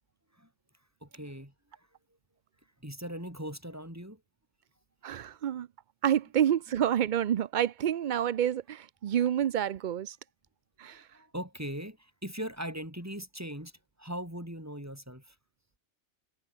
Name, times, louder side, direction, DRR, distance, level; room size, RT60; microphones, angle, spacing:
voice 1, 1.0-1.5 2.8-4.2 5.2-5.3 10.8-13.7 14.0-15.4, equal, 10° right, 5.4 m, -40 dB
voice 2, 5.0-5.7 6.0-10.2 10.8-11.0, right 10 dB, 70° right, 0.4 m, -28 dB
omnidirectional pair, 1.4 m